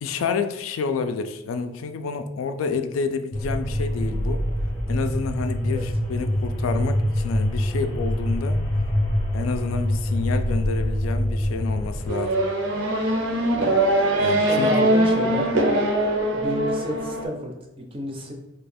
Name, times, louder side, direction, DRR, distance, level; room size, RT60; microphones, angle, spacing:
voice 1, 0.0-4.4 4.9-8.6 9.3-12.4 14.2-14.9, left 5 dB, 90° left, 9 dB, 0.3 m, -29 dB
sound 1, 3.3-12.1, left 1 dB, 25° left, 0.6 m, -25 dB
Race car auto racing / Accelerating revving vroom, 12.1-17.2, right 1 dB, 80° right, 0.6 m, -22 dB
voice 2, 14.4-15.5 16.2-18.3, right 1 dB, 25° right, 2 dB, 0.4 m, -30 dB
2.8 x 2.3 x 4.2 m, 0.96 s
head